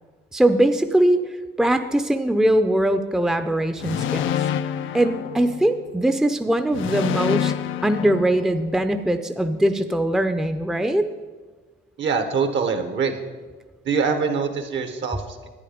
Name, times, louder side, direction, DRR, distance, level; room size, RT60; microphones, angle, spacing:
voice 1, 0.3-1.2 1.6-4.4 4.9-7.5 7.8-11.1, right 1 dB, 5° right, 8 dB, 0.6 m, -21 dB
sound 1, 3.8-6.0 6.7-8.9, left 10 dB, 80° left, 0.5 m, -27 dB
voice 2, 12.0-13.2 13.8-15.5, right 5 dB, 65° right, 7 dB, 1.3 m, -24 dB
11.0 x 9.4 x 5.1 m, 1.4 s
cardioid pair, 90°, 20 cm